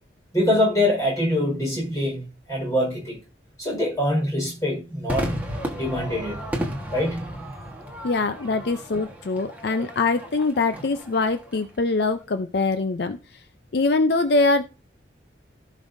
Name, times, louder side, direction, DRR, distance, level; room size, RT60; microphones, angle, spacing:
voice 1, 0.3-3.2 3.6-5.3 5.7-6.4 6.9-7.4, left 1 dB, 20° left, 4.6 m, -24 dB
Crowd / Fireworks, 5.1-11.6, equal, 10° right, 1.3 m, -33 dB
voice 2, 8.0-13.2 13.7-14.6, left 3 dB, 60° left, 0.5 m, -23 dB
15.5 x 5.4 x 2.6 m
head